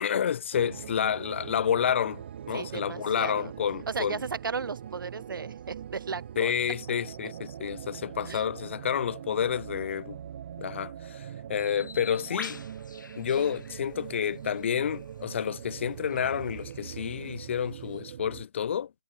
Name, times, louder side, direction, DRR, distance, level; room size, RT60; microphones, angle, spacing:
voice 1, 0.0-4.2 6.4-10.2 10.6-12.6 13.2-18.9, left 8 dB, 35° left, 0.5 m, -29 dB
sound 1, 0.5-18.4, right 9 dB, 35° right, 0.7 m, -42 dB
voice 2, 2.5-3.5 3.9-6.5 8.3-8.4, right 5 dB, 85° right, 0.8 m, -35 dB
Bird, 11.6-18.0, left 5 dB, 70° left, 2.9 m, -47 dB
hypercardioid pair, 165°, 11 cm